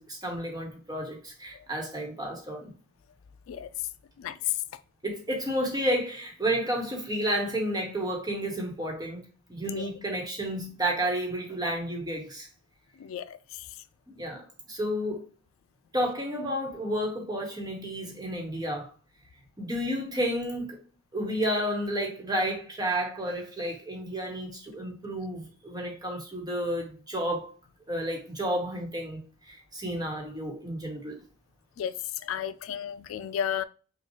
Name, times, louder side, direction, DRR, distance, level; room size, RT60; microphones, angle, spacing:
voice 1, 0.0-2.7 5.0-12.5 14.1-14.4 14.7-15.2 15.9-18.9 19.6-20.8 21.1-27.5 27.9-31.2, equal, 20° right, 1.2 m, -31 dB
voice 2, 32.2-33.6, left 8 dB, 80° left, 0.3 m, -33 dB
5.4 x 2.3 x 3.0 m
head